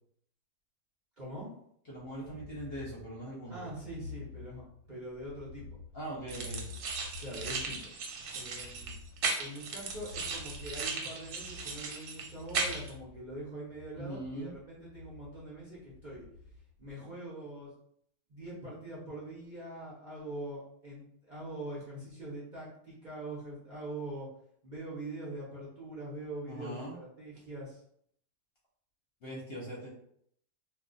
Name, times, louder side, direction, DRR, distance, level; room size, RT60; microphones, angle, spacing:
voice 1, 1.2-1.5 3.5-4.6 4.9-5.8 7.2-7.9 8.3-8.9 9.4-16.3 16.8-17.7 18.3-24.3 24.6-27.8, right 1 dB, 40° right, -7 dB, 0.8 m, -43 dB
voice 2, 1.9-3.6 5.9-6.6 14.0-14.5 26.5-27.0 29.2-29.9, right 1 dB, 50° left, -5 dB, 0.8 m, -41 dB
sound 1, 2.2-16.9, left 4 dB, 65° right, 1.0 m, -49 dB
sound 2, 6.3-12.9, right 4 dB, 85° right, 1.1 m, -37 dB
2.4 x 2.3 x 3.9 m, 0.68 s
omnidirectional pair, 1.6 m